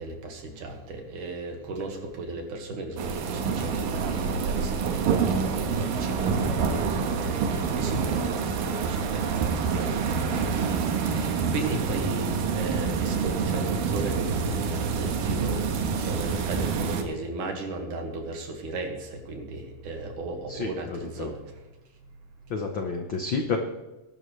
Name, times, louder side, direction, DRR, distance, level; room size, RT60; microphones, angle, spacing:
voice 1, 0.0-21.4, right 2 dB, 70° right, 3 dB, 3.3 m, -36 dB
sound 1, 3.0-17.0, right 5 dB, 85° right, 3.0 m, -27 dB
voice 2, 20.5-21.3 22.5-23.6, left 4 dB, 70° left, 3 dB, 1.1 m, -30 dB
21.0 x 12.0 x 3.3 m, 1.1 s
omnidirectional pair, 3.9 m